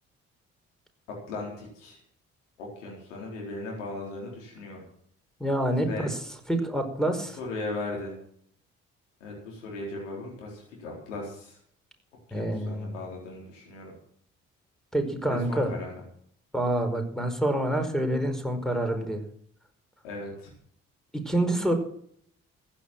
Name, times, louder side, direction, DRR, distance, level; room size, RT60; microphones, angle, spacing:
voice 1, 1.3-2.0 2.6-4.8 5.8-6.1 7.4-8.2 9.2-11.6 12.3-13.9 15.3-16.0 20.0-20.5, left 2 dB, 85° left, -2 dB, 4.4 m, -37 dB
voice 2, 5.4-6.2 6.5-7.4 12.3-13.0 14.9-15.7 16.5-19.2 21.1-21.7, right 1 dB, ahead, 7 dB, 5.0 m, -27 dB
15.0 x 10.5 x 7.5 m, 0.64 s
hypercardioid pair, 45°, 36 cm